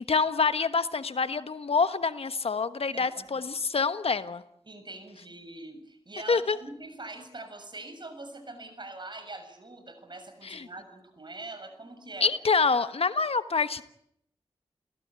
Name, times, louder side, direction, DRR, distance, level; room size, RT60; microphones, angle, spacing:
voice 1, 0.0-4.4 6.3-6.6 10.4-10.7 12.2-13.8, left 4 dB, 70° left, 11 dB, 1.3 m, -26 dB
voice 2, 2.9-3.3 4.6-12.3, right 2 dB, 45° right, 8 dB, 7.0 m, -43 dB
29.5 x 16.5 x 9.5 m, 0.72 s
wide cardioid pair, 65°, 10 cm